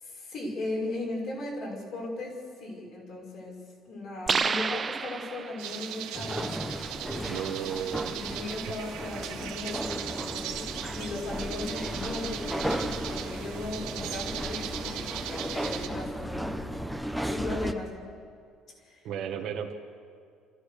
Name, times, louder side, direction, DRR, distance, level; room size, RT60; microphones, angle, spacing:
voice 1, 0.0-3.6 3.8-6.6 7.1-7.5 7.8-10.6 11.0-16.6 17.0-18.0 18.8-19.1, left 2 dB, 50° left, -2 dB, 6.2 m, -37 dB
sound 1, 4.3-5.8, right 5 dB, 25° right, 0.7 m, -29 dB
sound 2, 5.6-15.9, right 10 dB, 90° right, 1.8 m, -38 dB
sound 3, 6.1-17.7, equal, ahead, 0.9 m, -35 dB
voice 2, 7.3-8.4 19.0-19.7, right 8 dB, 60° right, 1 dB, 1.5 m, -34 dB
27.5 x 15.0 x 6.7 m, 2.2 s
cardioid pair, 135°, 0 cm